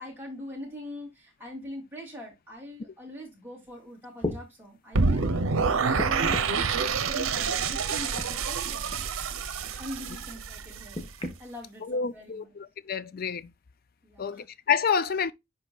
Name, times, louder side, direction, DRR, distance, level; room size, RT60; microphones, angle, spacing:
voice 1, 0.0-6.4 6.8-8.9 9.6-11.1 11.4-12.5 14.0-14.5, equal, 10° right, 2.9 m, -42 dB
sound 1, 3.7-3.8 4.2-4.4 5.9-6.6 7.9-8.3 8.9-9.1 10.9-11.4 12.3-12.4, left 2 dB, 25° left, 1.2 m, -34 dB
sound 2, 4.9-11.0, right 5 dB, 90° right, 0.8 m, -27 dB
voice 2, 11.8-13.5 14.2-15.3, left 6 dB, 45° left, 0.4 m, -28 dB
10.5 x 4.0 x 2.3 m
head